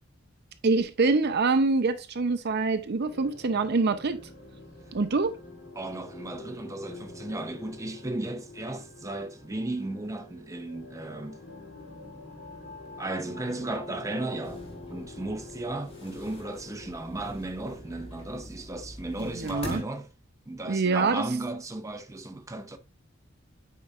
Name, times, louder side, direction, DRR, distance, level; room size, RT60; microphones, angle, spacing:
voice 1, 0.6-4.2 4.9-5.4 19.3-19.8 20.7-21.2, right 3 dB, 55° right, 0.6 m, -25 dB
sound 1, 3.0-18.3, left 2 dB, 85° left, 3.3 m, -46 dB
voice 2, 5.8-11.4 13.0-20.1 20.5-22.8, right 2 dB, 15° right, 0.7 m, -35 dB
sound 2, 14.4-19.8, left 1 dB, 30° left, 2.5 m, -44 dB
8.7 x 4.7 x 2.4 m
head